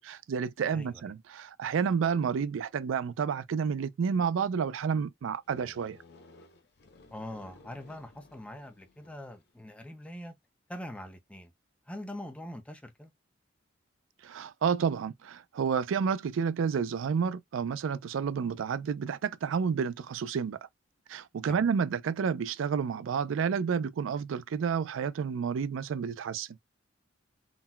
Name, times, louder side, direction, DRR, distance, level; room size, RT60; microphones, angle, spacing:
voice 1, 0.0-6.0 14.2-20.6 21.1-26.5, right 6 dB, 90° right, 0.4 m, -30 dB
voice 2, 0.7-1.0 7.1-10.3 10.7-11.5 11.9-13.1 21.5-21.6, left 1 dB, 5° left, 0.4 m, -43 dB
sound 1, 5.5-9.5, left 3 dB, 60° left, 0.6 m, -56 dB
3.9 x 2.1 x 2.2 m
head